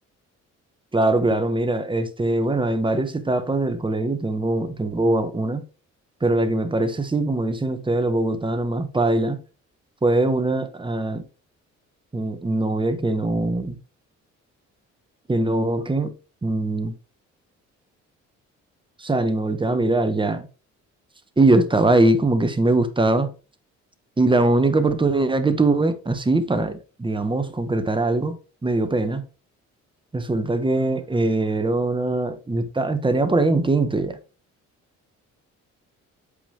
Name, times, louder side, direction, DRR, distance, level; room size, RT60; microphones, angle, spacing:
voice 1, 0.9-5.6 6.2-9.4 10.0-11.2 12.1-13.8 15.3-16.1 16.4-16.9 19.0-20.5 21.4-23.3 24.2-28.4 28.6-29.2 30.1-34.2, right 2 dB, 15° right, 1.3 m, -22 dB
8.3 x 5.5 x 3.4 m
cardioid pair, 90°, 30 cm